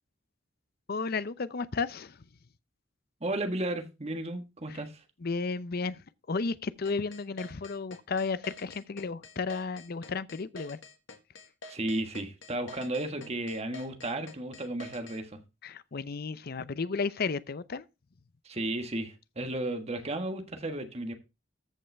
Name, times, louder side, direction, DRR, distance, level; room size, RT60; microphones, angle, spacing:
voice 1, 0.9-2.3 4.7-4.8 5.2-10.8 15.6-17.8, left 4 dB, 55° left, 0.6 m, -33 dB
voice 2, 3.2-5.0 11.7-15.4 18.4-21.1, right 1 dB, 35° right, 1.5 m, -34 dB
sound 1, 6.8-15.2, left 3 dB, 75° left, 1.7 m, -47 dB
14.0 x 5.5 x 3.4 m
head